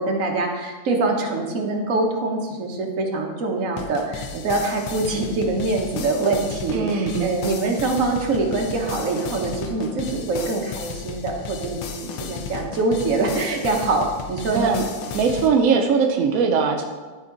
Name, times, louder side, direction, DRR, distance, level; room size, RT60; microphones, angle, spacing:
voice 1, 0.0-14.7, right 3 dB, 45° right, 1 dB, 1.2 m, -24 dB
sound 1, 3.8-15.5, left 6 dB, 85° left, 1.7 m, -35 dB
voice 2, 6.7-7.3 14.5-14.8 15.1-16.8, right 5 dB, 75° right, 3 dB, 0.7 m, -20 dB
13.0 x 4.3 x 3.9 m, 1.3 s
omnidirectional pair, 2.3 m